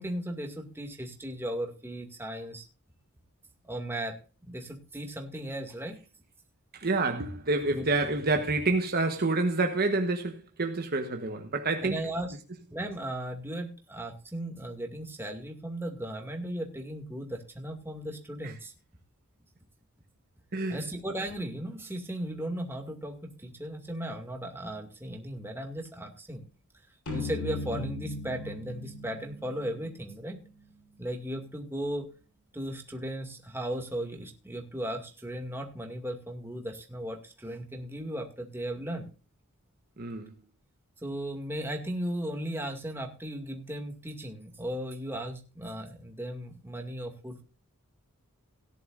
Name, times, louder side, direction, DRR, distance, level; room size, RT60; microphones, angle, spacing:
voice 1, 0.0-2.7 3.7-4.2 4.4-6.0 7.7-7.9 11.8-12.4 12.7-18.7 20.7-26.4 27.1-30.4 31.0-32.1 32.5-39.1 41.0-47.4, right 1 dB, 10° right, 2.2 m, -36 dB
voice 2, 6.7-12.0 18.4-18.5 20.5-20.8 40.0-40.3, right 3 dB, 45° right, 1.2 m, -28 dB
sound 1, 27.1-30.6, left 2 dB, 80° left, 5.3 m, -38 dB
17.5 x 10.5 x 2.5 m
head